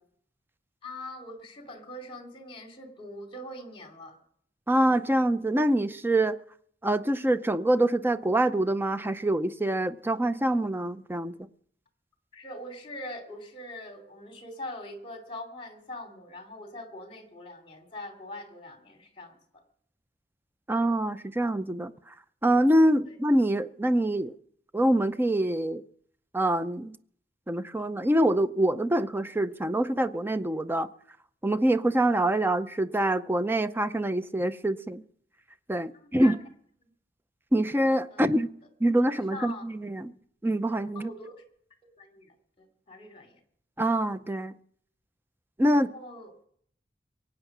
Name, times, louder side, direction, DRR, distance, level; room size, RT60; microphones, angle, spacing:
voice 1, 0.8-4.2 12.3-19.6 23.0-23.1 35.9-36.4 38.1-38.3 38.8-39.0 39.3-39.6 40.9-41.4 42.0-43.4 45.7-46.3, left 1 dB, 30° left, 2.7 m, -43 dB
voice 2, 4.7-6.4 6.8-11.3 20.7-21.9 22.4-24.3 24.7-25.8 26.3-27.0 27.5-30.9 31.4-35.0 35.7-36.4 37.5-38.5 38.8-40.1 40.4-41.1 43.8-44.5 45.6-45.9, right 1 dB, 10° right, 0.5 m, -25 dB
23.0 x 8.8 x 6.0 m
head